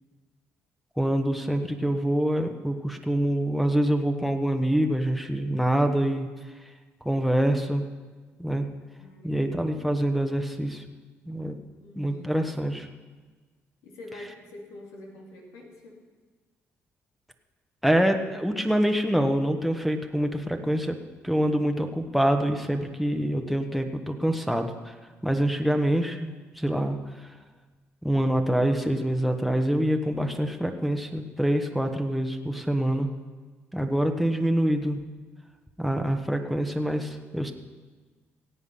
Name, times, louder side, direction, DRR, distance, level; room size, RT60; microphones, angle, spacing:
voice 1, 1.0-6.3 7.0-7.8 8.4-8.7 9.2-10.8 11.3-11.5 12.0-12.9 17.8-21.0 21.2-24.9 25.2-27.3 28.0-33.1 33.7-35.0 35.8-37.5, right 1 dB, ahead, 4 dB, 1.3 m, -25 dB
voice 2, 9.0-9.7 11.8-12.5 13.8-16.0, left 2 dB, 85° left, -1 dB, 2.8 m, -46 dB
17.0 x 8.2 x 5.6 m, 1.4 s
supercardioid pair, 70°, 5 cm